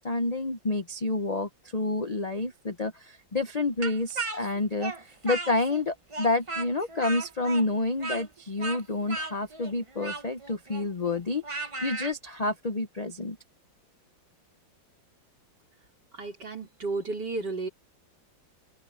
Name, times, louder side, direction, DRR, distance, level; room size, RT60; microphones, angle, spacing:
voice 1, 0.0-13.4, left 2 dB, 80° left, 0.3 m, -29 dB
Speech, 3.8-5.8 6.1-12.1, right 3 dB, 20° right, 0.9 m, -36 dB
voice 2, 16.1-17.7, right 3 dB, 60° right, 5.2 m, -33 dB
open air
omnidirectional pair, 2.1 m